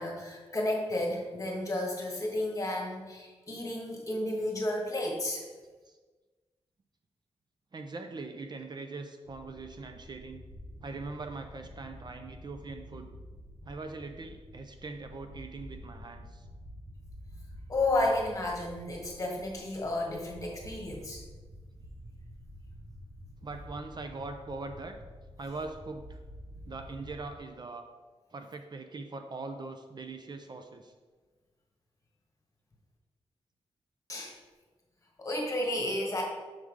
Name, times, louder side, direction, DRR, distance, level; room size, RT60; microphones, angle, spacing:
voice 1, 0.0-5.4 17.7-21.2 34.1-34.3 35.2-36.2, left 1 dB, 30° left, 0 dB, 1.4 m, -32 dB
voice 2, 7.7-10.4 10.8-13.1 13.6-16.5 23.4-25.0 25.4-26.2 26.6-27.9 28.3-30.9, right 3 dB, 40° right, 6 dB, 0.5 m, -41 dB
sound 1, 9.3-27.4, equal, 60° right, 1.3 m, -49 dB
6.3 x 3.6 x 4.7 m, 1.3 s
wide cardioid pair, 100°, 11 cm